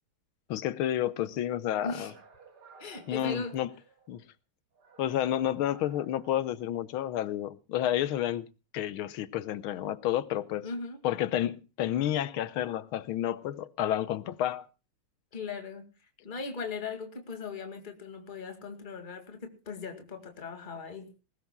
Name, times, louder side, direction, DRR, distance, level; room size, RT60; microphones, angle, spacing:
voice 1, 0.5-2.1 3.1-3.7 4.1-4.2 5.0-8.5 8.7-10.7 11.0-14.7, left 11 dB, 80° left, 1.7 m, -30 dB
sound 1, 1.7-4.2 4.7-7.2, right 4 dB, 90° right, 3.9 m, -57 dB
voice 2, 1.8-2.1 2.8-3.6 10.6-11.0 15.3-15.9 16.2-21.1, left 4 dB, 25° left, 2.2 m, -39 dB
20.5 x 19.0 x 2.2 m
omnidirectional pair, 2.3 m